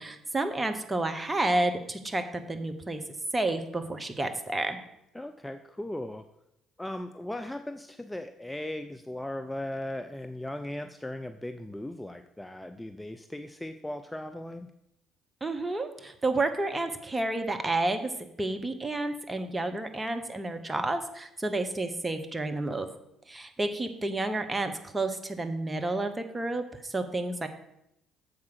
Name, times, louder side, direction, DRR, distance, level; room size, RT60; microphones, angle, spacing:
voice 1, 0.0-3.0 3.3-4.8 15.4-18.1 18.4-22.9 23.3-27.5, right 2 dB, 20° right, 7 dB, 1.0 m, -30 dB
voice 2, 5.1-6.3 6.8-14.7, left 1 dB, 10° left, 8 dB, 0.5 m, -38 dB
7.2 x 4.8 x 6.3 m, 0.82 s
figure-of-eight pair, 50°, 0 cm